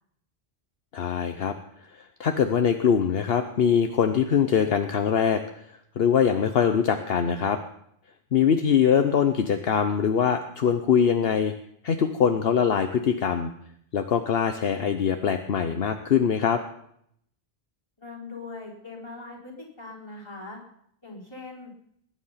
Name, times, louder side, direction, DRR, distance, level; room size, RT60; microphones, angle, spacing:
voice 1, 0.9-1.5 1.9-5.4 6.0-7.6 8.3-11.5 11.8-13.5 13.9-16.6, left 7 dB, 65° left, 7 dB, 1.0 m, -23 dB
voice 2, 18.0-20.6 21.0-21.7, left 3 dB, 25° left, -3 dB, 4.0 m, -41 dB
20.0 x 9.7 x 5.7 m, 0.71 s
omnidirectional pair, 1.1 m